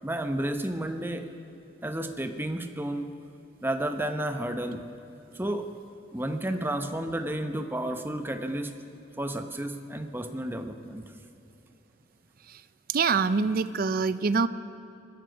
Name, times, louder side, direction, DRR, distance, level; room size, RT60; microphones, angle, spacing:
voice 1, 0.0-1.3 1.8-3.1 3.6-4.9 5.3-5.7 6.1-8.7 9.2-11.0, right 1 dB, 10° right, 7 dB, 0.8 m, -31 dB
voice 2, 12.9-14.5, right 5 dB, 45° right, 14 dB, 0.5 m, -25 dB
22.5 x 12.5 x 5.1 m, 3.0 s
head